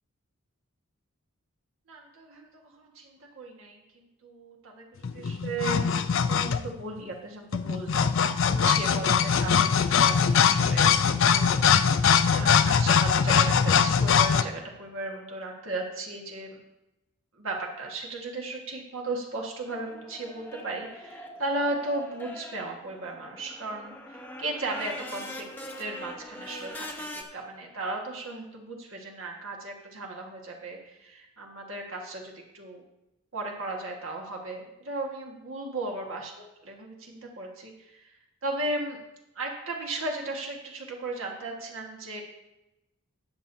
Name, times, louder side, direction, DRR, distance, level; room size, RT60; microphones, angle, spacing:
voice 1, 1.9-5.9 6.3-11.0 11.3-11.6 11.9-16.6 17.3-25.5 25.8-32.8 33.3-39.0 39.3-42.2, right 2 dB, 65° right, -1 dB, 1.5 m, -36 dB
sound 1, 5.0-6.8 7.5-14.4, left 7 dB, 60° left, 0.5 m, -22 dB
sound 2, 19.6-27.2, left 1 dB, 10° left, 0.8 m, -42 dB
19.0 x 6.9 x 2.7 m, 0.95 s
head